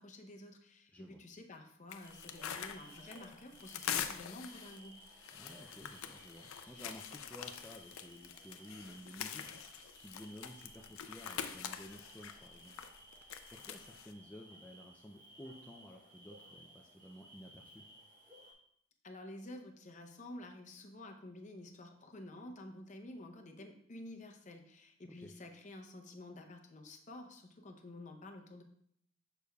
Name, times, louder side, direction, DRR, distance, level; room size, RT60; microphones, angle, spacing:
voice 1, 0.0-5.0 19.0-28.6, left 1 dB, 35° left, 4 dB, 0.7 m, -50 dB
sound 1, 1.9-14.1, left 9 dB, 85° left, 0.5 m, -45 dB
sound 2, 2.0-18.5, right 1 dB, 40° right, 1.4 m, -58 dB
voice 2, 5.3-12.7 13.2-17.8 25.0-25.3, equal, 5° left, 0 dB, 0.3 m, -53 dB
6.7 x 6.5 x 2.3 m, 0.68 s
head